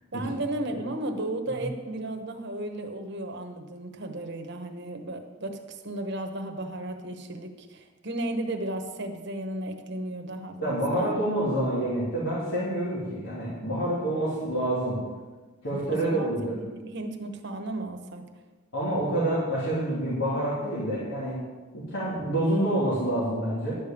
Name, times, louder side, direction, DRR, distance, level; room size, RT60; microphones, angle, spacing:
voice 1, 0.1-11.2 15.7-16.3 16.7-18.2, right 1 dB, 55° right, 5 dB, 1.2 m, -34 dB
voice 2, 10.6-15.0 15.6-16.6 18.7-21.4 21.7-23.8, right 1 dB, 65° left, -8 dB, 3.1 m, -27 dB
11.5 x 5.2 x 8.5 m, 1.3 s
head